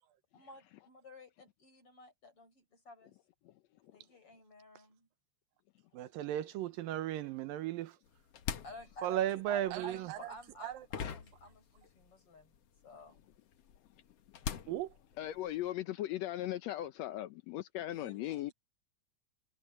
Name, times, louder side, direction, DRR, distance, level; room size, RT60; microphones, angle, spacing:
voice 1, 0.3-3.2 3.9-5.1 8.6-12.5 12.8-13.2 17.9-18.5, left 1 dB, 40° left, 8.4 m, -52 dB
voice 2, 5.9-8.0 9.0-10.2 10.6-10.7 14.7-14.9, right 12 dB, 80° right, 2.7 m, -35 dB
sound 1, 8.1-12.1 12.4-15.7, left 7 dB, 55° left, 2.0 m, -44 dB
voice 3, 15.2-18.5, left 13 dB, 80° left, 1.6 m, -38 dB
omnidirectional pair, 4.0 m